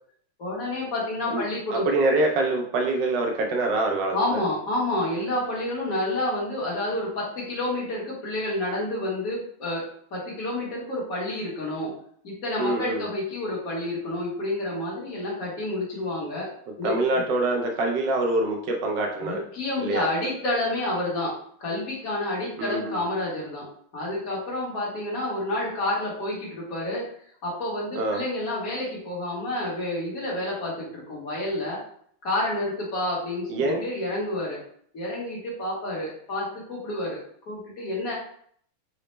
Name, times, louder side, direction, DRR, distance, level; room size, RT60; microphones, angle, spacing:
voice 1, 0.4-1.8 4.1-11.9 12.2-16.5 16.8-17.2 19.2-21.3 21.6-23.6 23.9-27.0 27.4-31.8 32.2-34.6 34.9-37.2 37.5-38.1, left 1 dB, 50° left, -5 dB, 1.3 m, -29 dB
voice 2, 1.7-4.4 12.6-13.1 16.8-19.4 19.8-20.1 22.6-23.0 28.0-28.2 33.5-33.9, right 2 dB, 75° right, 1 dB, 1.0 m, -25 dB
4.1 x 2.0 x 3.1 m, 0.62 s
omnidirectional pair, 2.4 m